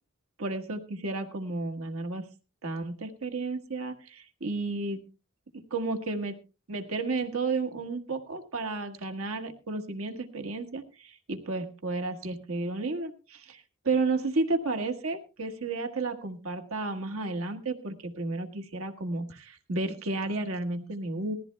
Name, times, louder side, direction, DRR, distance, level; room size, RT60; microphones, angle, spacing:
voice 1, 0.4-2.2 2.6-5.0 5.5-6.4 6.7-21.4, right 3 dB, 85° right, 6 dB, 1.5 m, -32 dB
20.0 x 14.5 x 2.2 m, 0.32 s
head